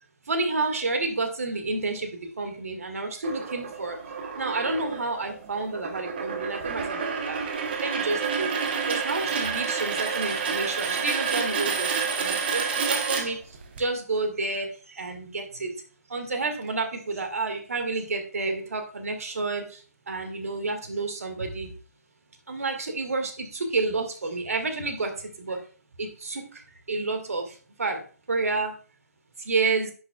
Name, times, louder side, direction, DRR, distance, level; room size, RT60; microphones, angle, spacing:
voice 1, 0.3-4.0 4.4-7.4 7.8-8.5 8.9-11.9 12.2-13.4 13.8-15.7 16.1-19.6 20.1-21.7 22.5-25.1 25.4-25.6 26.0-26.5 26.9-27.5 27.8-28.0 28.3-28.7 29.5-29.9, right 3 dB, 60° right, 5 dB, 2.0 m, -29 dB
sound 1, 3.2-13.8, right 6 dB, 35° right, 1.2 m, -29 dB
10.0 x 6.2 x 2.4 m, 0.39 s
figure-of-eight pair, 145°, 9 cm